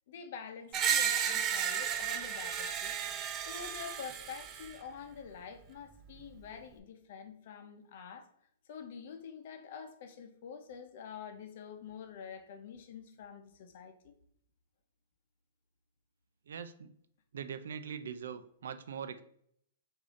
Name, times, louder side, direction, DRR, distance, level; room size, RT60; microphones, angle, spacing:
voice 1, 0.1-3.0 3.5-8.3 8.7-14.1, left 6 dB, 50° left, 0.7 m, -47 dB
Screech, 0.7-4.7, right 8 dB, 20° right, 0.3 m, -33 dB
voice 2, 16.5-16.9 17.3-19.2, right 7 dB, 85° right, 0.4 m, -42 dB
5.0 x 2.7 x 3.6 m
hypercardioid pair, 160°, 0 cm